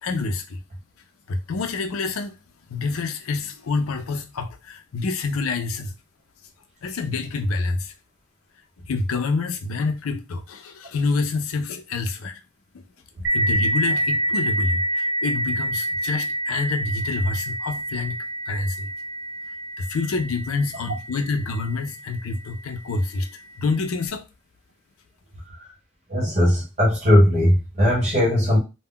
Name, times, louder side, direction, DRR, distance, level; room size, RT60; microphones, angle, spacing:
voice 1, 0.0-0.6 1.3-2.3 2.7-5.9 6.8-7.9 8.9-12.4 12.7-12.8 13.3-18.2 18.5-18.9 19.8-23.3 23.6-24.2, left 3 dB, 85° left, 0.4 m, -27 dB
sound 1, 13.2-22.5, right 1 dB, 65° right, 0.6 m, -27 dB
voice 2, 26.1-28.6, left 1 dB, 30° right, 0.7 m, -18 dB
2.2 x 2.1 x 3.6 m
head